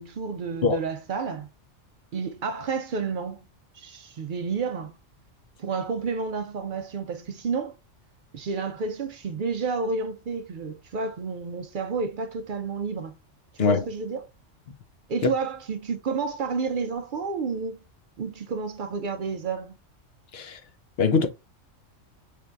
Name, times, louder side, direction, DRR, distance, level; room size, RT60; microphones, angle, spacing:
voice 1, 0.0-1.5 2.1-3.4 3.7-5.0 5.6-7.7 8.3-13.2 13.5-14.3 15.1-17.8 18.2-19.8, right 5 dB, 65° right, 0.5 m, -30 dB
voice 2, 0.6-0.8 13.6-13.9 20.3-20.6 21.0-21.3, left 4 dB, 60° left, 0.9 m, -22 dB
4.5 x 3.3 x 2.5 m
omnidirectional pair, 1.3 m